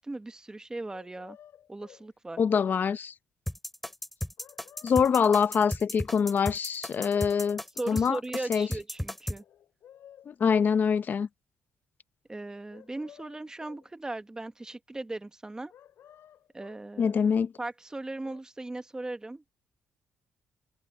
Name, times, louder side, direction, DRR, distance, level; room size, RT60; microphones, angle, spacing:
voice 1, 0.0-1.4 1.7-2.4 7.8-9.4 12.3-15.7 16.5-17.2 17.6-19.5, right 2 dB, 15° right, 1.2 m, -38 dB
sound 1, 0.9-2.1 4.4-5.6 6.8-8.0 9.3-10.7 12.7-13.9 15.7-16.9 17.9-18.4, left 10 dB, 75° left, 4.9 m, -54 dB
voice 2, 2.4-3.1 4.8-8.2 8.5-8.7 10.3-11.3 17.0-17.5, left 6 dB, 50° left, 0.7 m, -25 dB
sound 2, 3.5-9.4, equal, 5° left, 5.2 m, -35 dB
cardioid pair, 95°, 4 cm